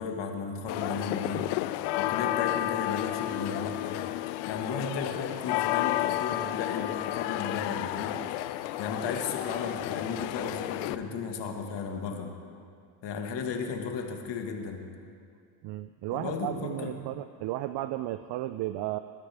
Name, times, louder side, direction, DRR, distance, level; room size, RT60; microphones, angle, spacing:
voice 1, 0.0-4.0 4.4-8.2 8.8-12.4 13.0-14.9 16.1-16.9, left 5 dB, 60° left, 3 dB, 1.8 m, -35 dB
sound 1, 0.7-11.0, left 15 dB, 90° left, 0.6 m, -31 dB
voice 2, 15.6-19.0, right 15 dB, 60° right, 12 dB, 0.5 m, -34 dB
21.5 x 13.0 x 3.5 m, 2.2 s
supercardioid pair, 75°, 49 cm